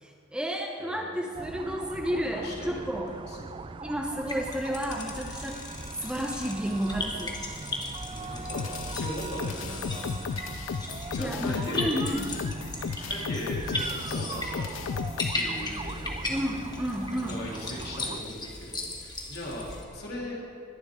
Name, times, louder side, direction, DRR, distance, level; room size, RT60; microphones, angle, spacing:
voice 1, 0.0-3.1 3.8-5.6 6.0-7.4 11.2-12.3 16.3-17.4, equal, 5° right, 1 dB, 0.8 m, -31 dB
sound 1, 1.3-18.2, right 3 dB, 25° right, 0.4 m, -40 dB
voice 2, 2.2-2.8 3.3-3.6 8.1-10.0 11.1-11.9 13.1-14.7 15.2-16.2 17.3-19.7 19.9-20.4, left 1 dB, 55° left, -3 dB, 3.0 m, -39 dB
sound 2, 4.3-19.8, left 2 dB, 20° left, 1.6 m, -37 dB
sound 3, 8.5-15.4, left 6 dB, 90° left, 0.3 m, -34 dB
20.5 x 11.0 x 3.7 m, 2.3 s
head